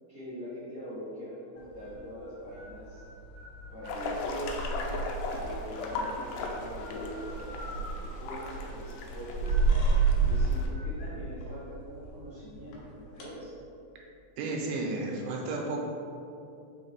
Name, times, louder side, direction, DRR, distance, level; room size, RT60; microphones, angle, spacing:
voice 1, 0.1-3.0 3.7-4.9 5.4-9.6 10.2-13.5, equal, 50° left, -12 dB, 1.2 m, -43 dB
sound 1, 1.6-13.3, equal, 70° left, 2.3 m, -48 dB
sound 2, 3.9-10.7, right 3 dB, 85° left, 2.5 m, -30 dB
voice 2, 14.4-15.8, right 2 dB, 85° right, -1 dB, 2.6 m, -32 dB
6.0 x 3.5 x 4.5 m, 2.8 s
omnidirectional pair, 4.3 m